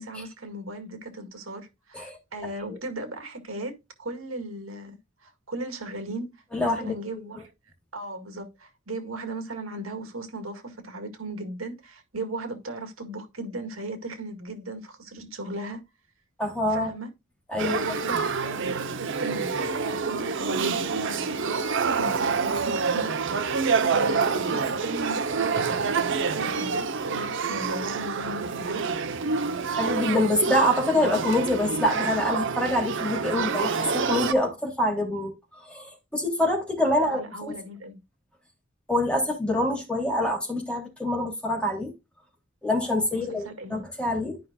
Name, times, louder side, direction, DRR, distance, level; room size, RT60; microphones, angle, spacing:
voice 1, 0.0-7.5 7.9-15.8 16.7-17.1 17.6-28.9 37.0-38.0 43.1-43.8, right 2 dB, 80° right, 2.0 m, -37 dB
voice 2, 6.5-6.9 16.4-16.9 17.5-17.8 29.8-35.3 35.6-37.6 38.9-41.9 42.6-44.4, left 1 dB, 5° left, 3.1 m, -26 dB
Male speech man speaking / Child speech kid speaking / Conversation, 17.6-34.3, right 5 dB, 65° right, 0.8 m, -27 dB
13.0 x 5.5 x 2.3 m
head